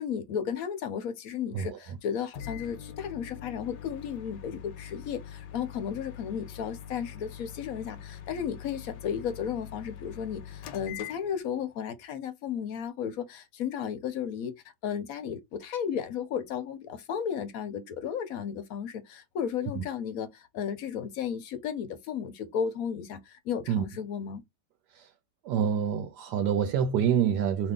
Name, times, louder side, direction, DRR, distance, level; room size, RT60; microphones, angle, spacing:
voice 1, 0.0-14.5 14.8-24.4, left 8 dB, 65° left, 1.0 m, -34 dB
Microwave oven, 2.3-11.7, left 9 dB, 85° left, 1.3 m, -44 dB
voice 2, 25.4-27.7, right 8 dB, 75° right, 1.1 m, -26 dB
2.8 x 2.6 x 3.6 m
omnidirectional pair, 1.8 m